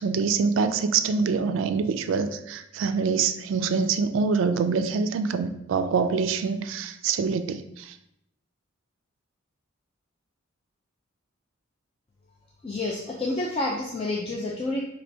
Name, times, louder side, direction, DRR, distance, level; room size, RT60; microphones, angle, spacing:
voice 1, 0.0-7.9, right 5 dB, 70° right, 9 dB, 0.3 m, -25 dB
voice 2, 12.6-14.8, left 2 dB, 30° left, -3 dB, 0.4 m, -29 dB
4.4 x 3.0 x 2.7 m, 0.79 s
head